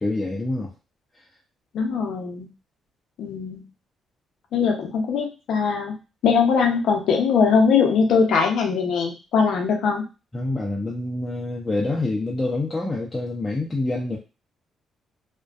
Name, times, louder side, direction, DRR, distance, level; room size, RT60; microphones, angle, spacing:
voice 1, 0.0-0.7 10.3-14.2, left 2 dB, 20° left, -3 dB, 0.5 m, -26 dB
voice 2, 1.7-2.5 3.2-3.6 4.5-5.9 6.2-10.0, left 5 dB, 75° left, 2 dB, 0.6 m, -21 dB
2.5 x 2.2 x 2.3 m, 0.30 s
cardioid pair, 90°, 0 cm